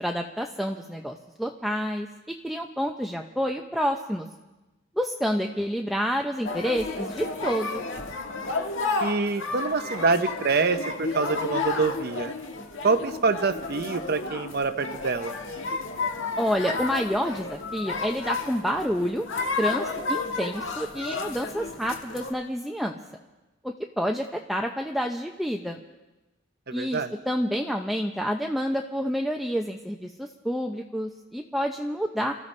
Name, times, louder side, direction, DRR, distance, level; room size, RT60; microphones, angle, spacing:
voice 1, 0.0-4.3 4.9-7.8 16.4-19.3 19.6-23.0 23.6-25.8 26.7-32.3, equal, ahead, 2 dB, 0.6 m, -29 dB
sound 1, 6.4-22.3, left 3 dB, 70° left, 1.6 m, -32 dB
voice 2, 9.0-12.3 12.8-15.3 26.7-27.1, right 4 dB, 50° right, 9 dB, 0.7 m, -26 dB
28.5 x 14.5 x 3.3 m, 1.1 s
head